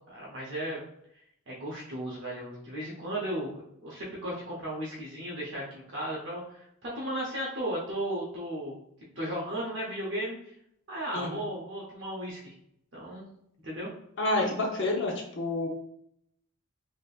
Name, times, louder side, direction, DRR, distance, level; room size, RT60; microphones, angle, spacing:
voice 1, 0.1-0.8 1.5-8.7 9.2-10.5 10.9-12.5 12.9-13.3 13.6-13.9, right 1 dB, 55° right, -5 dB, 0.8 m, -35 dB
voice 2, 14.2-15.7, left 2 dB, 55° left, 0 dB, 0.6 m, -28 dB
3.4 x 2.8 x 2.4 m, 0.73 s
head